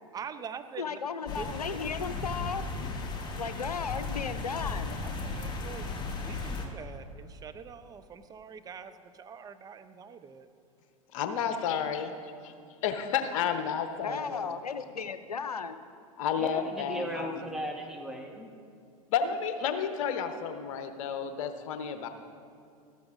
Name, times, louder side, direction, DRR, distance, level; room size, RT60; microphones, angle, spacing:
voice 1, 0.1-1.0 1.3-1.5 5.0-10.5, right 6 dB, 20° right, 10 dB, 0.5 m, -44 dB
voice 2, 0.8-2.7 3.4-5.0 14.0-15.9, left 6 dB, 90° left, 11 dB, 0.5 m, -35 dB
sound 1, 1.3-6.6, left 3 dB, 25° left, 1.3 m, -36 dB
voice 3, 11.1-12.1 12.8-14.5 16.2-17.5 19.1-22.1, left 7 dB, 60° left, 7 dB, 0.9 m, -31 dB
voice 4, 16.4-18.5, right 1 dB, 5° right, 1 dB, 1.2 m, -37 dB
13.5 x 11.5 x 2.5 m, 2.3 s
figure-of-eight pair, 90°, 19 cm